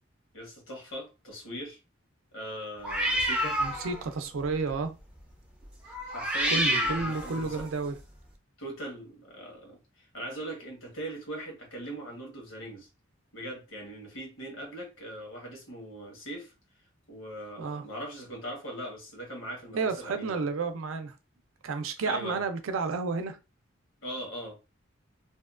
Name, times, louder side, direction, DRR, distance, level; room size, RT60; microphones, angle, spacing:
voice 1, 0.3-1.8 2.3-3.6 6.0-7.7 8.6-12.9 13.3-16.5 17.1-20.4 22.0-22.4 24.0-24.6, right 1 dB, 75° left, 1.1 m, -40 dB
sound 1, 2.8-4.1 4.4-4.7 5.9-7.7, equal, 5° right, 0.4 m, -29 dB
voice 2, 3.6-4.9 6.5-8.0 17.6-17.8 19.7-21.1 21.6-23.4, right 4 dB, 80° right, 0.4 m, -31 dB
2.7 x 2.2 x 2.4 m
head